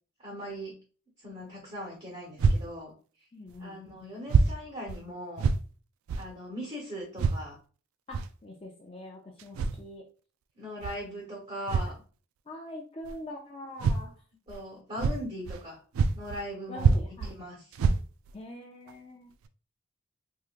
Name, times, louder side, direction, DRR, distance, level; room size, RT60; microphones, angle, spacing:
voice 1, 0.2-0.7 1.2-2.9 3.6-5.5 6.2-7.6 10.5-12.0 14.5-15.8 16.1-17.6, equal, 35° right, -3 dB, 1.2 m, -39 dB
sound 1, 2.4-2.6 3.5-3.6 4.3-4.5 4.9-5.0 5.4-5.6 6.1-6.3 7.2-7.4 8.1-8.3 9.4-9.8 10.8-10.9 11.7-11.9 13.0-13.2 13.8-14.0 14.5-14.6 15.0-15.6 15.9-16.5 16.8-17.3 17.7-18.3 18.9-19.0 19.4-19.5, right 4 dB, 80° right, 0.3 m, -26 dB
voice 2, 3.3-3.8 8.1-10.1 12.5-14.2 16.7-17.3 18.3-19.3, left 1 dB, 25° left, 0 dB, 0.4 m, -44 dB
3.6 x 3.1 x 2.4 m, 0.38 s
head